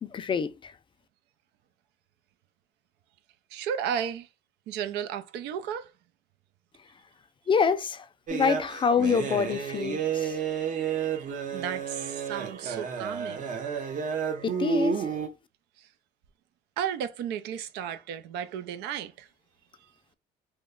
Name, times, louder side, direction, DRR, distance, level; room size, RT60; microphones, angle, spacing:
voice 1, 0.1-0.7 7.5-8.1 8.3-10.4 14.4-15.1, left 6 dB, 30° left, 0.4 m, -26 dB
voice 2, 3.5-4.3 4.7-5.9 10.0-13.4 15.8-15.9 16.8-19.3, right 8 dB, 90° right, 0.5 m, -34 dB
sound 1, 8.3-15.3, right 6 dB, 50° right, 0.8 m, -31 dB
3.0 x 2.1 x 3.7 m
cardioid pair, 110°, 17 cm